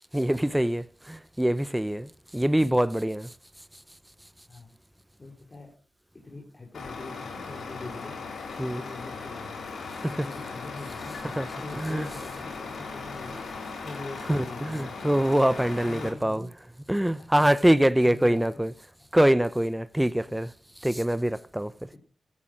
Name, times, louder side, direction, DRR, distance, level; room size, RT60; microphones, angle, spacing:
voice 1, 0.1-2.1 2.3-3.3 8.6-8.8 10.0-10.1 11.4-11.5 11.8-12.1 14.3-16.4 16.9-18.7 19.1-20.5 20.8-21.7, right 1 dB, 10° right, 0.8 m, -24 dB
voice 2, 5.2-5.8 6.1-8.2 8.6-11.2 11.6-13.4 13.8-15.2 15.8-16.5 17.2-17.5 18.0-18.6 20.3-20.5 21.9-22.0, left 2 dB, 40° left, 4.5 m, -43 dB
Truck, 6.7-16.1, left 4 dB, 75° left, 3.6 m, -38 dB
15.5 x 9.9 x 6.3 m
supercardioid pair, 40°, 0 cm